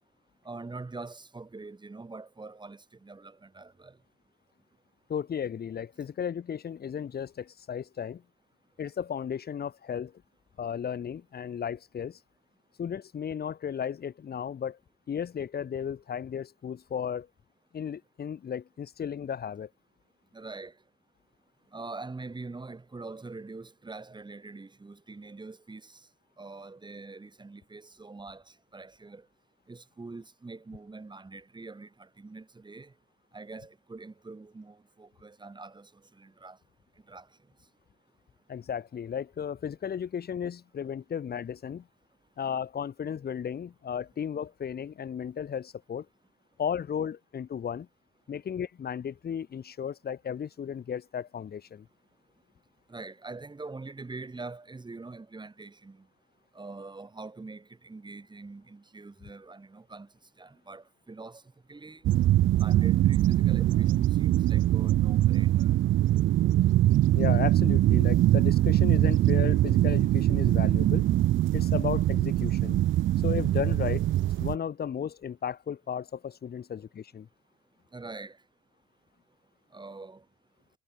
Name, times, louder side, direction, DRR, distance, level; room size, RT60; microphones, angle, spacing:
voice 1, 0.4-4.0 20.3-20.7 21.7-26.1 26.4-29.3 29.7-32.9 33.3-36.6 37.1-37.3 52.9-56.1 56.5-60.1 60.4-61.4 61.7-62.0 62.5-65.7 77.9-78.4 79.7-80.2, right 3 dB, 20° right, 5.9 m, -44 dB
voice 2, 5.1-8.2 8.8-10.1 10.6-12.2 12.8-14.8 15.1-17.3 17.7-19.7 38.5-41.9 42.4-46.1 46.6-47.9 48.3-51.9 67.1-71.0 71.5-72.8 73.2-74.1 74.4-77.3, left 8 dB, 50° left, 3.2 m, -34 dB
sound 1, 62.0-74.6, right 14 dB, 75° right, 0.9 m, -23 dB
cardioid pair, 90°, 20 cm